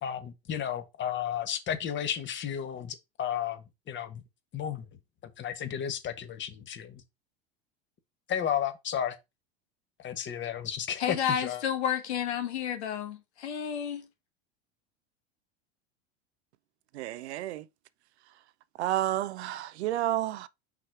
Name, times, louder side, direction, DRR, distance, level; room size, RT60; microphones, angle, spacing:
voice 1, 0.0-4.2 4.5-4.9 5.4-7.0 8.3-9.1 10.0-11.6, left 9 dB, 35° left, 1.3 m, -33 dB
voice 2, 11.0-14.1, left 9 dB, 80° left, 1.4 m, -31 dB
voice 3, 16.9-17.7 18.8-20.5, right 13 dB, 80° right, 0.6 m, -30 dB
5.8 x 3.2 x 5.8 m
hypercardioid pair, 90°, 33 cm